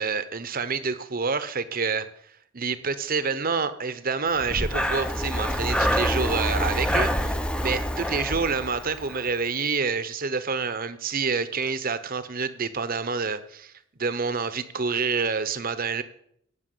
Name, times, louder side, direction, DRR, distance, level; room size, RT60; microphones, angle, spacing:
voice 1, 0.0-2.1 2.5-13.7 14.0-16.0, right 5 dB, 45° right, 12 dB, 1.0 m, -28 dB
Breathing, 4.4-9.3, equal, 5° left, 0.8 m, -26 dB
17.5 x 6.1 x 7.9 m, 0.69 s
head